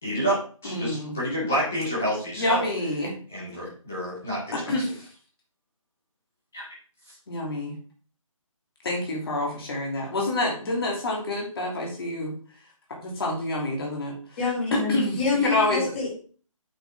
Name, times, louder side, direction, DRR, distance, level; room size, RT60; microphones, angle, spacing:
voice 1, 0.0-2.7 3.3-4.9 6.5-6.7 7.1-7.2, equal, 5° left, -6 dB, 0.4 m, -29 dB
voice 2, 0.6-1.1 2.4-3.1 4.7-4.8 7.3-7.7 8.8-12.3 13.0-14.1 14.9-15.1 15.4-15.8, left 2 dB, 45° left, -2 dB, 2.7 m, -27 dB
voice 3, 14.4-16.1, left 4 dB, 25° left, -6 dB, 3.7 m, -26 dB
8.3 x 5.9 x 3.5 m, 0.41 s
figure-of-eight pair, 165°, 18 cm